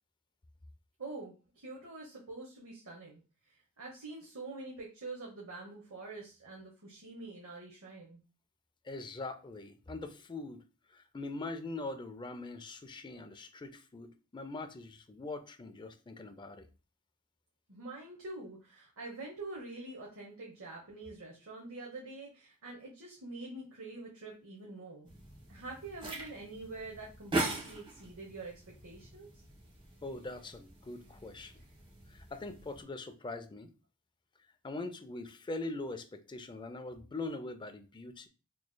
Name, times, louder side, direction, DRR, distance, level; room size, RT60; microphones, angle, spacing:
voice 1, 1.0-3.2 3.5-8.2 17.7-25.1 25.5-29.3, right 2 dB, 70° right, 1.0 m, -46 dB
voice 2, 8.8-10.6 10.9-16.7 30.0-31.6 32.1-33.7 34.6-38.3, left 2 dB, 20° left, 0.4 m, -42 dB
sound 1, 25.1-32.8, right 2 dB, 25° right, 1.1 m, -41 dB
4.6 x 3.0 x 2.2 m
head